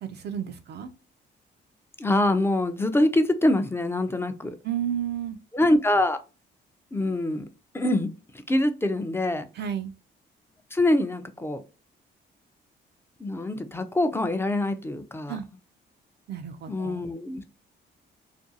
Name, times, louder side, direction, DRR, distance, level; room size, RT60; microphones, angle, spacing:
voice 1, 0.0-0.9 4.6-5.4 9.5-9.9 15.3-15.4 16.3-17.0, right 9 dB, 55° right, 0.4 m, -32 dB
voice 2, 2.0-4.6 5.5-6.2 6.9-7.4 7.7-8.1 8.3-9.4 10.7-11.6 13.2-15.4 16.7-17.5, left 1 dB, 10° left, 0.4 m, -24 dB
2.5 x 2.2 x 2.6 m
cardioid pair, 90°, 20 cm